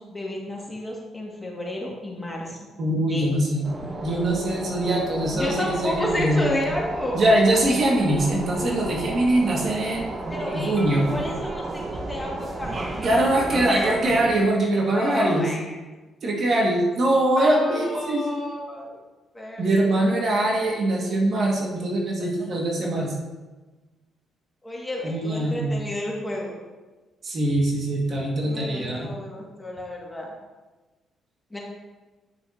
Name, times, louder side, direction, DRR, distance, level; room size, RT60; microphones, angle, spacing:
voice 1, 0.0-2.6 3.1-3.3 5.3-7.2 10.3-10.8 11.1-12.8 14.9-15.6 17.4-19.0 19.3-20.5 24.6-26.6 28.4-30.3 31.5-31.6, left 1 dB, 15° left, -3 dB, 2.1 m, -31 dB
voice 2, 2.8-3.7 4.0-6.4 7.1-10.1 10.4-11.1 13.0-15.5 16.2-18.3 19.6-23.2 25.0-25.8 27.2-29.1, right 1 dB, 55° right, -2 dB, 2.0 m, -22 dB
sound 1, 3.6-14.4, right 2 dB, 35° right, 0.9 m, -33 dB
9.6 x 6.2 x 2.9 m, 1.2 s
supercardioid pair, 70°, 0 cm